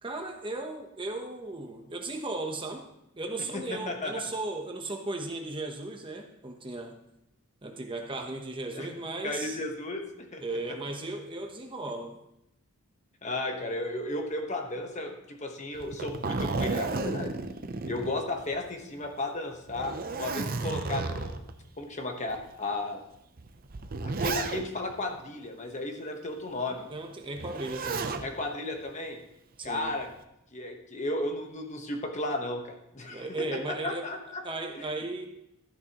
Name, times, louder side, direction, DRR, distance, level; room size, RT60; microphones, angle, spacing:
voice 1, 0.0-2.8 3.1-6.9 7.6-9.6 10.4-12.2 26.9-28.2 29.6-29.9 33.0-34.1 34.4-35.3, right 2 dB, 25° right, 3 dB, 0.9 m, -36 dB
voice 2, 3.5-4.3 8.7-8.9 9.2-10.4 13.2-17.3 17.9-21.4 21.8-23.0 24.0-26.9 28.2-29.2 29.6-30.1 30.5-33.5 33.8-34.4 34.7-35.0, left 2 dB, 35° left, 3 dB, 1.2 m, -34 dB
Zipper (clothing), 15.7-18.7 19.0-19.1 19.7-21.5 22.3-22.4 23.4-24.9 27.4-28.3 29.6-30.1, right 3 dB, 40° right, 0.6 m, -33 dB
12.5 x 10.5 x 3.0 m, 0.82 s
head